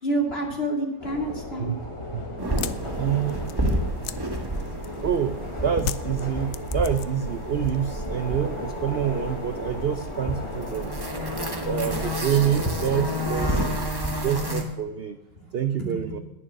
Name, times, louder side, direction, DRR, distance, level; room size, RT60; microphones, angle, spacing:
voice 1, 0.0-1.7 15.4-15.5 15.8-16.0, right 1 dB, 35° left, 1 dB, 2.8 m, -28 dB
sound 1, 1.0-13.9, left 2 dB, 20° left, 1.5 m, -36 dB
sound 2, 2.4-5.2 5.8-7.3 7.6-8.2, left 11 dB, 90° left, 1.3 m, -36 dB
sound 3, 2.4-14.6, equal, 15° right, 1.6 m, -30 dB
voice 2, 3.0-3.5 5.0-10.9 11.6-13.6 14.1-15.2 15.5-16.2, right 9 dB, 60° right, 9 dB, 0.6 m, -27 dB
11.0 x 10.5 x 6.3 m, 0.99 s
omnidirectional pair, 1.8 m